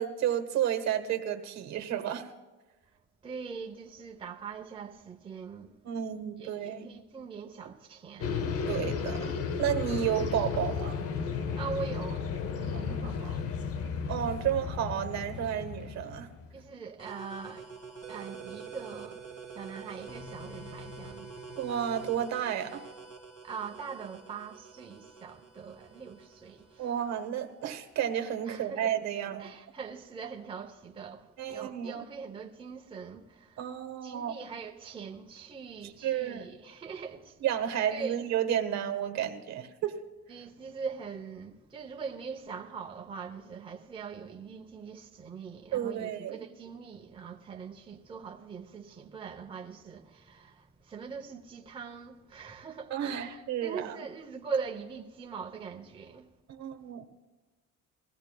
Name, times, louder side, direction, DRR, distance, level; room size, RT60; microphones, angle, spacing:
voice 1, 0.0-2.3 5.8-6.9 8.7-11.0 13.0-13.1 14.1-16.3 21.6-22.8 26.8-29.5 31.4-32.0 33.6-34.4 36.0-36.5 37.4-39.9 45.7-46.5 52.9-54.0 56.5-57.0, right 10 dB, 60° right, 1.2 m, -32 dB
voice 2, 3.2-5.7 6.4-8.5 11.5-13.5 16.5-17.7 18.1-19.2 19.5-21.3 23.4-26.9 28.5-28.9 29.4-33.6 34.0-37.4 37.9-38.2 40.3-56.3, right 5 dB, 15° right, 0.7 m, -42 dB
sound 1, 8.2-16.5, left 6 dB, 50° left, 0.7 m, -34 dB
sound 2, 17.0-28.4, right 4 dB, 25° left, 2.1 m, -47 dB
21.0 x 15.5 x 2.2 m
cardioid pair, 150°, 30 cm